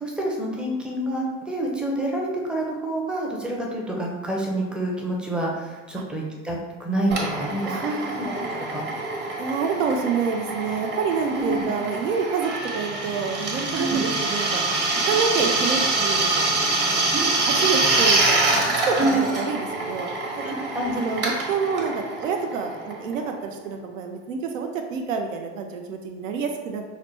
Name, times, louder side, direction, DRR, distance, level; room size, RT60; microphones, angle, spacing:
voice 1, 0.0-8.4 8.7-8.8 11.3-11.6 13.7-14.0 17.1-17.6 19.0-19.2 20.3-21.0, right 1 dB, 5° right, -2 dB, 0.4 m, -28 dB
Drill, 7.1-23.4, right 3 dB, 30° right, 0.8 m, -25 dB
voice 2, 7.6-8.3 9.4-14.6 15.0-16.5 16.9-17.1 17.5-19.0 19.3-20.1 20.4-20.5 20.9-26.8, right 5 dB, 90° right, 4 dB, 0.5 m, -28 dB
4.8 x 2.1 x 2.9 m, 1.3 s
hypercardioid pair, 110°, 37 cm